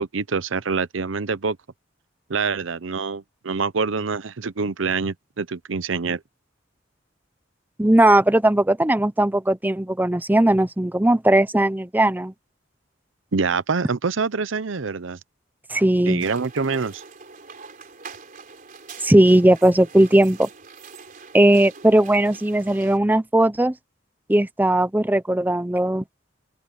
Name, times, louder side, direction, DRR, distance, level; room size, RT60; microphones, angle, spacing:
voice 1, 0.0-1.6 2.3-6.2 13.3-15.2 16.1-17.0, right 4 dB, 90° right, 0.8 m, -25 dB
voice 2, 7.8-12.3 15.7-16.3 19.0-20.5 21.3-23.7 24.3-26.0, right 1 dB, 10° right, 0.7 m, -18 dB
sound 1, 16.2-23.0, right 5 dB, 45° right, 3.7 m, -44 dB
open air
head